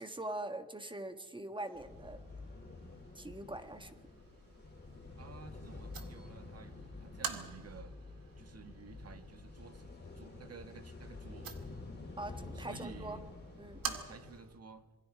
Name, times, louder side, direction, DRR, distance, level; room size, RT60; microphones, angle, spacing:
voice 1, 0.0-2.2 3.1-4.0 12.2-13.2 13.6-13.8, right 1 dB, 15° right, 8 dB, 1.6 m, -43 dB
sound 1, 1.6-14.6, right 7 dB, 60° right, 2.1 m, -49 dB
sound 2, 1.7-14.4, left 3 dB, 25° left, 4.1 m, -49 dB
voice 2, 5.2-8.0 8.4-11.6 12.5-13.3 13.8-14.9, right 5 dB, 40° right, 9 dB, 1.6 m, -53 dB
26.5 x 22.5 x 4.9 m, 1.2 s
cardioid pair, 120°, 38 cm